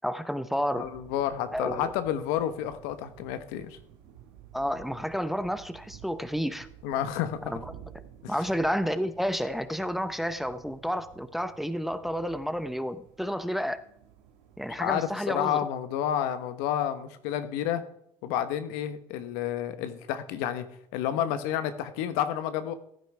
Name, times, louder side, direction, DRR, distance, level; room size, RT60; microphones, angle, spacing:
voice 1, 0.0-0.9 1.5-1.9 4.5-6.7 7.5-7.7 8.3-13.8 14.6-15.7, equal, ahead, 12 dB, 0.8 m, -30 dB
voice 2, 0.7-3.8 6.8-7.5 8.2-8.3 14.8-17.8 18.2-20.7 20.9-22.7, left 10 dB, 75° left, 11 dB, 1.1 m, -30 dB
sound 1, 0.7-15.0, right 9 dB, 80° right, 1.8 m, -52 dB
15.5 x 9.3 x 3.4 m, 0.72 s
hypercardioid pair, 75°, 15 cm